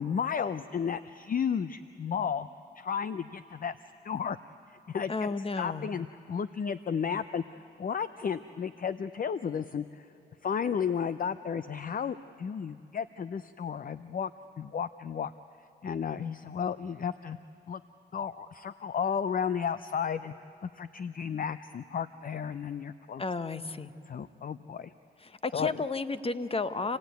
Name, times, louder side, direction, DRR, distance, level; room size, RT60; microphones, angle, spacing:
voice 1, 0.0-2.5 2.8-3.7 4.0-4.4 4.7-5.3 5.6-10.1 10.4-14.3 14.6-15.3 15.8-17.4 17.7-17.8 18.1-20.3 20.6-23.2 24.1-24.9 25.5-25.7, left 7 dB, 45° left, 13 dB, 0.6 m, -33 dB
voice 2, 5.1-5.9 23.2-23.9 25.2-27.0, left 3 dB, 25° left, 12 dB, 1.1 m, -32 dB
28.0 x 16.5 x 9.4 m, 2.9 s
cardioid pair, 60°, 21 cm